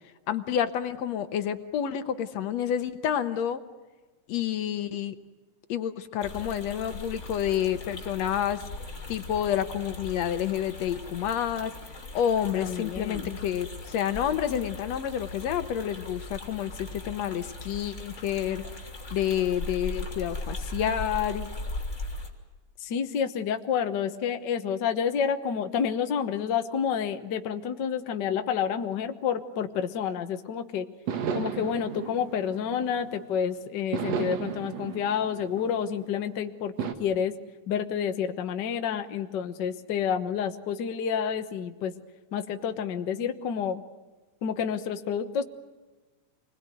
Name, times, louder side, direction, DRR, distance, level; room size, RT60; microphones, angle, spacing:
voice 1, 0.3-3.6 4.3-5.2 5.7-8.6 9.1-11.7 12.1-18.6 19.1-21.5, left 9 dB, 70° left, 10 dB, 2.1 m, -29 dB
sound 1, 6.2-22.3, left 2 dB, 25° left, 3.2 m, -39 dB
voice 2, 12.5-13.4 22.8-30.9 31.3-37.3 37.7-41.9 42.3-43.8 44.4-45.4, left 7 dB, 50° left, 7 dB, 1.4 m, -29 dB
sound 2, 31.1-33.3 33.9-36.2 36.8-36.9, right 7 dB, 65° right, 2.5 m, -34 dB
27.5 x 21.0 x 9.3 m, 1.2 s
omnidirectional pair, 3.4 m